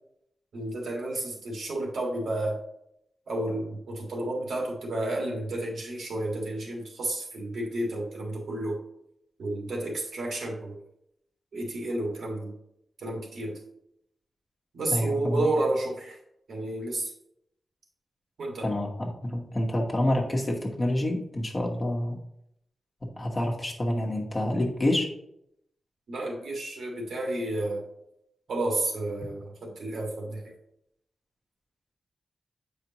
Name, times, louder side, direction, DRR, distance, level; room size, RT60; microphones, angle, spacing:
voice 1, 0.5-2.6 3.3-8.8 9.4-10.8 11.5-12.6 13.0-13.6 14.7-16.2 16.5-17.1 18.4-18.7 26.1-27.8 28.5-30.5, right 1 dB, 80° right, -1 dB, 1.8 m, -31 dB
voice 2, 14.9-15.5 18.6-22.2 23.2-25.1, left 1 dB, 25° left, 0 dB, 1.1 m, -27 dB
8.1 x 5.0 x 2.9 m, 0.77 s
wide cardioid pair, 145°, 0 cm